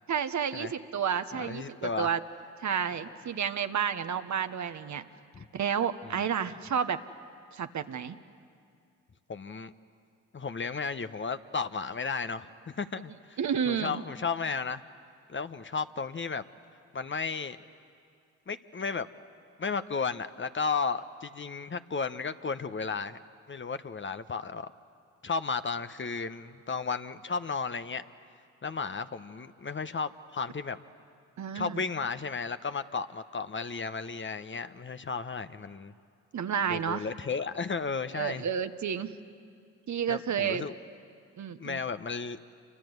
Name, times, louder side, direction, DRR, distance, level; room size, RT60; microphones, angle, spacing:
voice 1, 0.1-2.2 2.6-5.0 5.5-7.0 7.5-8.2 13.4-14.0 31.4-31.8 36.3-37.0 38.1-39.2 39.9-40.7 41.4-41.8, right 7 dB, 55° right, 9 dB, 1.3 m, -31 dB
voice 2, 1.3-2.1 5.3-5.5 6.0-6.3 9.3-9.7 10.3-12.5 12.8-13.4 13.7-14.8 15.3-16.4 16.9-17.6 18.5-19.1 19.6-23.2 23.5-24.7 25.2-28.1 28.6-30.8 31.5-35.9 36.7-38.4 40.1-40.7 41.6-42.4, left 5 dB, 35° left, 11 dB, 1.0 m, -34 dB
28.0 x 25.0 x 8.1 m, 2.3 s
hypercardioid pair, 50°, 35 cm